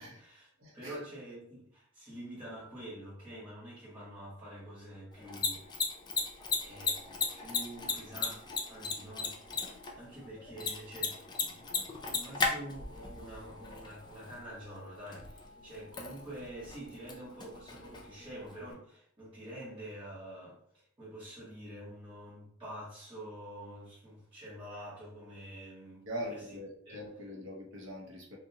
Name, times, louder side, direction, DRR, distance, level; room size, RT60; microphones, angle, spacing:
voice 1, 0.0-0.5 0.7-5.8 6.1-8.4 8.7-26.6 26.9-27.1, right 1 dB, 25° right, -10 dB, 1.0 m, -47 dB
voice 2, 0.6-1.0 12.0-12.2 26.1-28.4, equal, 65° right, -1 dB, 0.7 m, -42 dB
Mechanisms, 5.1-18.7, left 4 dB, 20° left, 0.3 m, -38 dB
2.6 x 2.1 x 2.7 m, 0.66 s
head